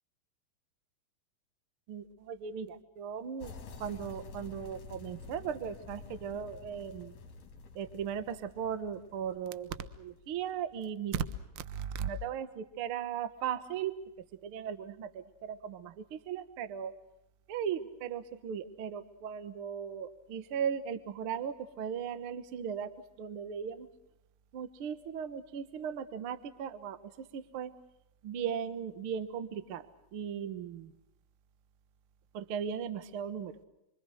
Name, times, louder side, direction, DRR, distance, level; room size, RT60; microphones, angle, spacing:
voice 1, 1.9-3.5 3.8-7.2 7.7-11.2 11.5-13.9 14.4-16.9 17.5-22.9 23.2-23.9 24.5-27.7 28.2-29.8 30.1-30.9 32.3-33.6, right 8 dB, 60° right, 12 dB, 1.5 m, -37 dB
sound 1, 3.4-11.1, left 4 dB, 55° left, 3.2 m, -50 dB
27.0 x 24.5 x 6.3 m, 0.87 s
omnidirectional pair, 4.1 m